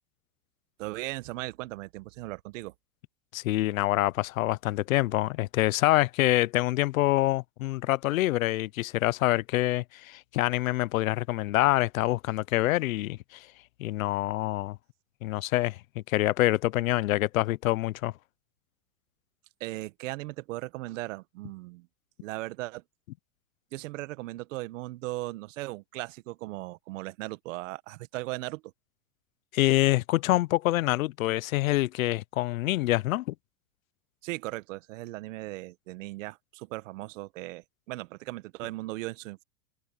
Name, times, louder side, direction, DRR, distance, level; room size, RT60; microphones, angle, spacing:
voice 1, 0.8-2.7 19.6-21.9 22.2-22.8 23.7-28.7 34.2-39.4, right 19 dB, 65° right, 1.6 m, -37 dB
voice 2, 3.3-13.5 13.8-14.8 15.2-18.1 29.5-33.3, left 17 dB, 80° left, 0.8 m, -26 dB
supercardioid pair, 135°, 41 cm